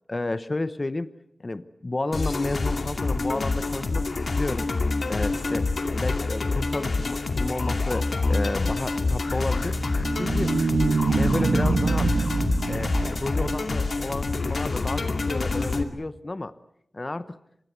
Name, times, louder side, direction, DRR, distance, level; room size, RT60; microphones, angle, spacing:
voice 1, 0.1-1.1 1.4-4.7 5.1-10.5 11.2-12.1 12.7-16.5 16.9-17.4, left 2 dB, 35° left, 14 dB, 0.9 m, -31 dB
sound 1, 2.1-15.8, left 3 dB, 70° left, 2.4 m, -27 dB
sound 2, 9.6-14.1, right 4 dB, 80° right, 1.0 m, -25 dB
26.0 x 22.0 x 8.2 m, 0.76 s
wide cardioid pair, 90°, 0 cm